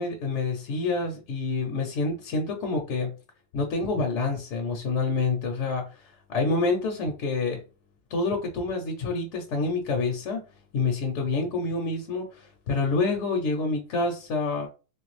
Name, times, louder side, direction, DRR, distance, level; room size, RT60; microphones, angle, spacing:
voice 1, 0.0-3.1 3.5-7.6 8.1-10.4 10.7-14.7, left 3 dB, 65° left, 0.9 m, -27 dB
3.2 x 2.5 x 3.1 m
omnidirectional pair, 1.4 m